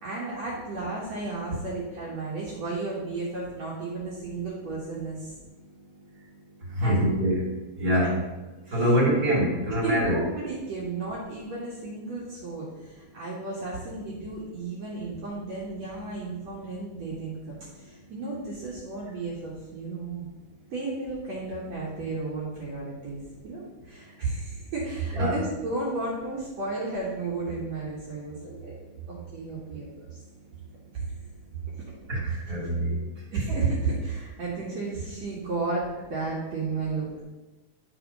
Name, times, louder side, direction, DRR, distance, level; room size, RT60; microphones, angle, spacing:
voice 1, 0.0-5.3 6.8-7.0 7.9-8.0 8.6-8.9 9.8-20.3 20.7-28.8 29.1-29.9 30.9-31.0 31.7-31.8 32.3-32.5 33.3-37.2, right 3 dB, 55° right, -5 dB, 2.3 m, -33 dB
voice 2, 5.6-6.2 6.6-8.1 8.7-10.2 25.1-25.3 32.1-33.0, equal, 25° right, -6 dB, 2.5 m, -25 dB
10.5 x 4.3 x 5.2 m, 1.1 s
omnidirectional pair, 4.3 m